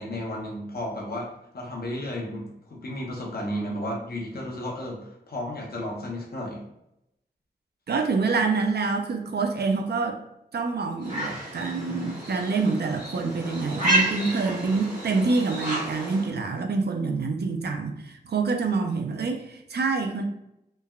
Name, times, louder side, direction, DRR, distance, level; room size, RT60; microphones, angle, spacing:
voice 1, 0.0-6.6, left 1 dB, 65° left, -2 dB, 0.8 m, -33 dB
voice 2, 7.9-10.2 10.5-20.2, right 4 dB, 70° right, 4 dB, 0.4 m, -26 dB
sound 1, 11.0-16.3, right 1 dB, 50° right, 1.3 m, -30 dB
3.2 x 2.1 x 2.3 m, 0.81 s
wide cardioid pair, 90°, 17 cm